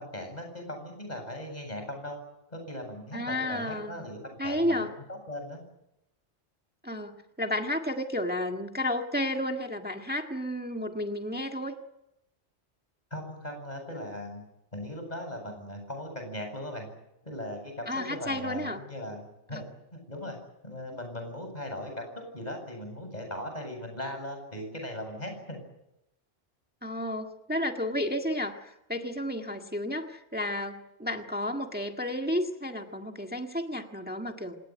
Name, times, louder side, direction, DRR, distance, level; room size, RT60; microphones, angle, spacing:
voice 1, 0.0-2.2 2.5-5.6 13.1-14.4 14.7-16.9 17.2-19.7 19.9-20.4 20.6-22.1 22.3-25.6, left 1 dB, 40° left, 4 dB, 7.9 m, -38 dB
voice 2, 3.1-4.1 4.4-4.9 6.8-11.8 17.9-18.8 19.5-19.6 26.8-34.6, left 1 dB, 10° right, 3 dB, 1.6 m, -32 dB
27.0 x 18.0 x 9.3 m, 0.87 s
omnidirectional pair, 1.2 m